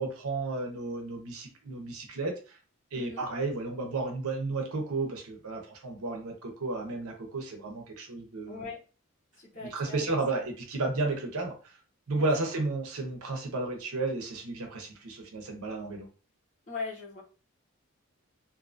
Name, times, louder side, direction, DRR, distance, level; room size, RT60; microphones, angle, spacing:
voice 1, 0.0-2.6 2.9-8.6 9.7-11.7 12.1-16.1, right 3 dB, 85° right, 2 dB, 0.8 m, -33 dB
voice 2, 2.9-3.3 8.5-8.8 9.4-10.4 12.1-12.5 16.7-17.2, left 3 dB, 35° left, -7 dB, 0.9 m, -40 dB
2.7 x 2.5 x 2.4 m, 0.36 s
head